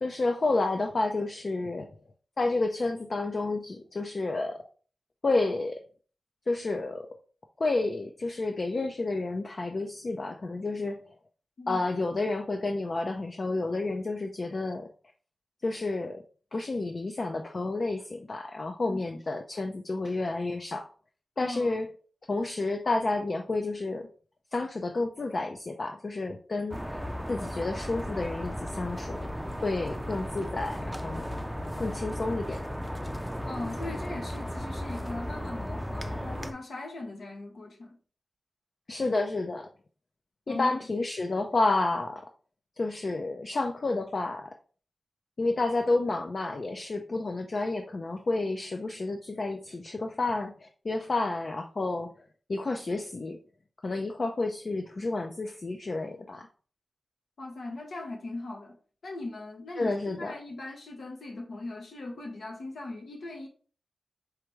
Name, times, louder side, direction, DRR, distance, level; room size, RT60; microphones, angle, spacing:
voice 1, 0.0-1.9 2.4-4.6 5.2-5.8 6.5-7.1 7.6-11.1 11.7-14.9 15.6-16.2 16.5-20.9 21.4-21.9 22.3-24.1 24.5-26.8 27.3-29.3 29.6-31.4 31.8-32.7 38.9-39.7 40.5-42.2 42.8-44.5 45.4-52.1 52.5-53.4 53.8-56.5 59.8-60.3, left 2 dB, 55° left, 0.5 m, -30 dB
voice 2, 18.9-19.2 21.4-21.8 33.4-38.0 40.5-40.8 57.4-58.8 59.0-63.5, left 2 dB, 80° left, 1.2 m, -39 dB
sound 1, 26.7-36.5, equal, ahead, 0.5 m, -35 dB
4.8 x 3.4 x 3.1 m
cardioid pair, 60°, 0 cm